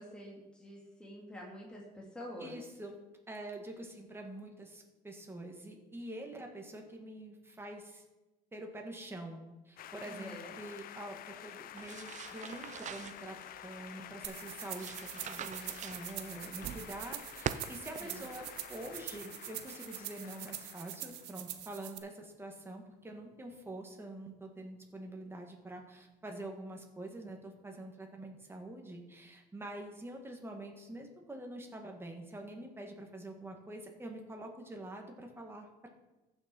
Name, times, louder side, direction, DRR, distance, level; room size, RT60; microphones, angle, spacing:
voice 1, 0.0-2.6 10.0-10.5 18.0-18.2, equal, 5° left, -3 dB, 2.3 m, -47 dB
voice 2, 2.4-3.0 3.3-8.0 8.5-13.4 13.6-18.4 18.7-35.9, right 1 dB, 15° right, 2 dB, 2.0 m, -46 dB
sound 1, 9.8-21.8, left 11 dB, 60° left, 0.5 m, -50 dB
sound 2, 11.8-19.2, right 9 dB, 45° right, 0.5 m, -45 dB
sound 3, 14.2-22.0, right 14 dB, 90° right, 0.8 m, -45 dB
14.5 x 6.4 x 4.5 m, 1.1 s
cardioid pair, 110°, 17 cm